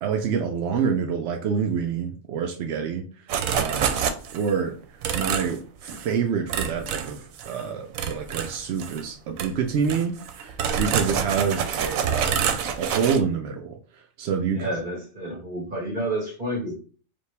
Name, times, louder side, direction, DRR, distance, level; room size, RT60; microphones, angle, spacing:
voice 1, 0.0-3.0 3.5-4.0 4.3-4.7 5.1-13.8 14.2-14.7, right 6 dB, 65° right, 3 dB, 0.8 m, -27 dB
sound 1, 3.3-4.5 5.0-5.6 5.9-6.1 6.5-7.6 7.9-9.0 9.4-9.5 9.8-13.2, right 7 dB, 90° right, 1.0 m, -27 dB
voice 2, 14.5-16.8, right 1 dB, 40° right, -5 dB, 1.6 m, -30 dB
5.1 x 2.4 x 3.3 m, 0.41 s
omnidirectional pair, 1.4 m